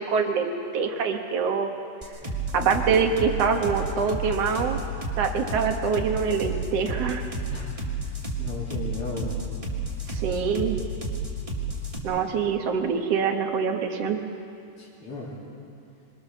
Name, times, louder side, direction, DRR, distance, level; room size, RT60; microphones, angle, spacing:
voice 1, 0.0-1.7 2.5-4.8 5.2-7.3 10.1-10.8 12.0-14.2, right 6 dB, 55° right, 4 dB, 1.9 m, -25 dB
sound 1, 2.0-12.0, right 3 dB, 10° right, 1.8 m, -31 dB
voice 2, 8.4-9.4 14.8-15.4, left 2 dB, 40° left, -7 dB, 3.7 m, -36 dB
24.0 x 22.5 x 6.8 m, 2.6 s
omnidirectional pair, 4.2 m